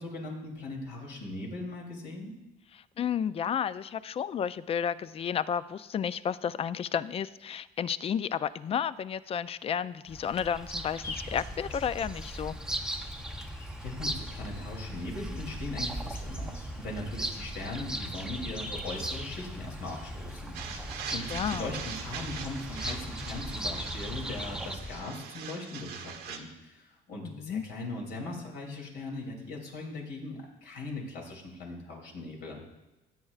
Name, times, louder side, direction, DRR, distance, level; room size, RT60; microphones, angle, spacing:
voice 1, 0.0-2.3 13.5-32.6, left 2 dB, 70° left, 0 dB, 2.9 m, -40 dB
voice 2, 3.0-12.6 21.3-21.7 27.2-27.6, left 8 dB, 35° left, 16 dB, 0.4 m, -32 dB
Bird vocalization bird call bird song, 10.1-24.8, right 1 dB, 5° right, 0.7 m, -39 dB
sound 1, 11.0-25.0, left 1 dB, 15° left, 1.5 m, -43 dB
sound 2, 20.5-26.4, right 7 dB, 85° right, 1.0 m, -42 dB
16.5 x 8.6 x 2.4 m, 1.1 s
cardioid pair, 110°, 17 cm